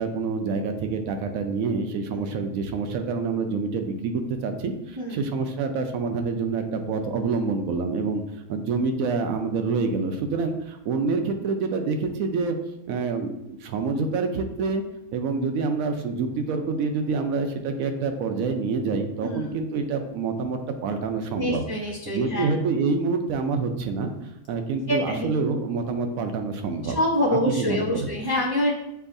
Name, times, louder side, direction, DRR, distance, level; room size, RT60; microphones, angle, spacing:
voice 1, 0.0-8.2 8.5-12.6 12.9-14.8 15.1-21.6 22.1-24.1 24.5-27.0 27.4-28.1, right 4 dB, 75° right, 6 dB, 1.0 m, -27 dB
voice 2, 21.4-22.5 24.9-25.3 26.8-28.7, left 1 dB, 35° right, -6 dB, 0.3 m, -26 dB
6.8 x 2.7 x 2.6 m, 0.85 s
omnidirectional pair, 1.6 m